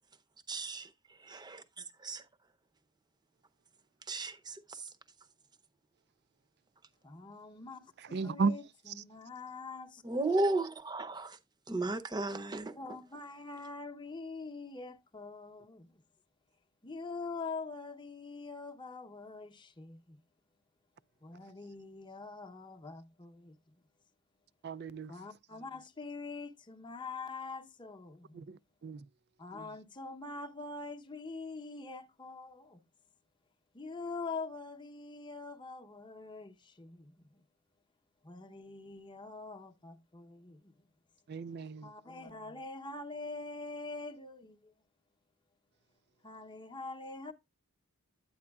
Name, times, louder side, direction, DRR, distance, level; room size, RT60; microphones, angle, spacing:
voice 1, 0.5-0.9 1.2-1.3 2.0-2.2 4.1-4.9 10.0-11.4 11.7-12.8, right 2 dB, 20° right, 0.7 m, -34 dB
voice 2, 7.0-10.0 12.7-15.9 16.8-20.2 21.2-23.6 25.1-28.4 29.4-32.8 33.7-37.4 38.2-40.9 41.8-44.7 46.2-47.3, left 3 dB, 20° left, 0.8 m, -44 dB
voice 3, 8.1-8.5 24.6-25.1 28.3-29.0 41.3-41.9, right 4 dB, 45° right, 0.4 m, -34 dB
9.5 x 8.7 x 2.3 m
head